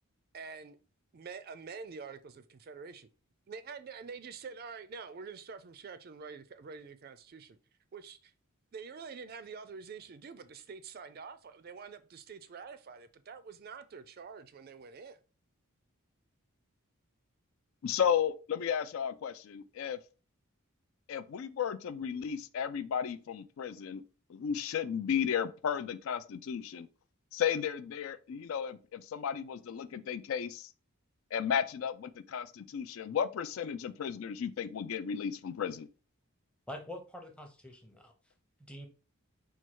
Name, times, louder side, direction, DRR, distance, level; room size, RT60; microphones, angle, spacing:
voice 1, 0.3-0.8 1.1-3.1 3.5-7.6 7.9-8.3 8.7-15.2, right 5 dB, 45° right, 0.4 m, -46 dB
voice 2, 17.8-20.0 21.1-24.0 24.3-26.9 27.3-30.7 31.3-35.9, left 8 dB, 65° left, 0.3 m, -34 dB
voice 3, 36.7-38.1 38.7-38.9, left 1 dB, 5° left, 0.6 m, -45 dB
4.4 x 2.3 x 4.5 m
head